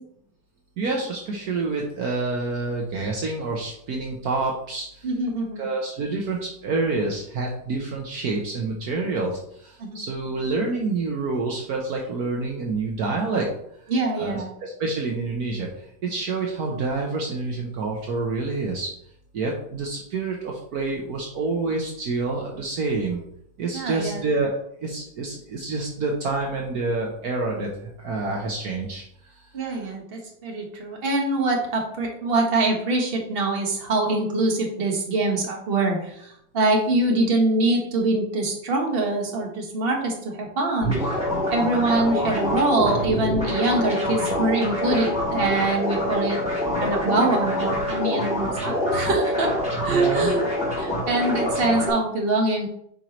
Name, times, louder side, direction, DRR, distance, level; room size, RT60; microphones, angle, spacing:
voice 1, 0.8-5.1 5.6-13.5 14.2-18.9 19.3-23.2 23.6-29.5 49.9-50.3, right 3 dB, 65° right, 0 dB, 1.3 m, -28 dB
voice 2, 5.0-5.7 9.8-10.0 13.9-14.5 23.7-24.2 29.5-40.9 41.5-46.4 46.8-49.5 49.8-50.4 50.7-52.7, right 2 dB, 35° right, 0 dB, 1.4 m, -24 dB
sound 1, 40.8-51.9, left 1 dB, 5° right, 2.8 m, -25 dB
9.0 x 4.5 x 3.0 m, 0.73 s
omnidirectional pair, 1.9 m